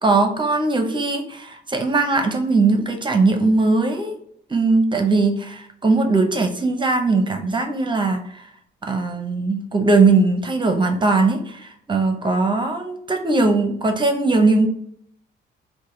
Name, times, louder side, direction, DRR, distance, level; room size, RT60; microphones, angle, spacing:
voice 1, 0.0-4.1 4.5-8.5 8.8-14.7, right 3 dB, 25° right, 5 dB, 0.7 m, -19 dB
4.7 x 2.2 x 3.1 m, 0.68 s
cardioid pair, 90°, 20 cm